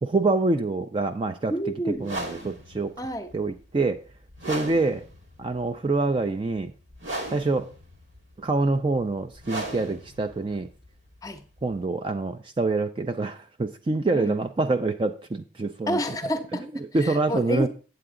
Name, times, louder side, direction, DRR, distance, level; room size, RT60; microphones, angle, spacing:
voice 1, 0.0-1.5 2.0-2.9 3.3-4.0 4.5-5.1 5.4-6.7 7.3-7.7 8.4-10.7 11.6-16.0 16.9-17.7, right 3 dB, 25° right, 0.3 m, -26 dB
voice 2, 1.5-2.2 3.0-3.3 11.2-11.4 14.1-14.4 15.9-17.7, equal, 20° left, 0.6 m, -30 dB
sound 1, 2.0-11.8, right 1 dB, 80° right, 2.0 m, -38 dB
7.9 x 7.8 x 3.7 m
head